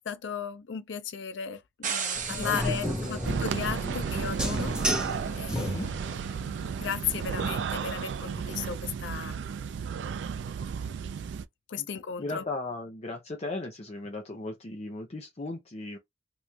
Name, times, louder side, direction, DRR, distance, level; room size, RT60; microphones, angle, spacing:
voice 1, 0.1-4.8 5.4-5.9 6.4-9.4 11.7-12.5, left 7 dB, 85° left, 0.5 m, -35 dB
sound 1, 1.8-7.0, right 6 dB, 45° right, 0.8 m, -39 dB
sound 2, 2.2-6.2, equal, 5° right, 1.0 m, -32 dB
voice 2, 2.3-4.0 5.5-5.9 11.8-11.9 12.2-16.0, left 2 dB, 35° left, 0.6 m, -37 dB
sound 3, 3.2-11.4, right 6 dB, 80° right, 0.3 m, -33 dB
3.0 x 2.5 x 3.2 m
head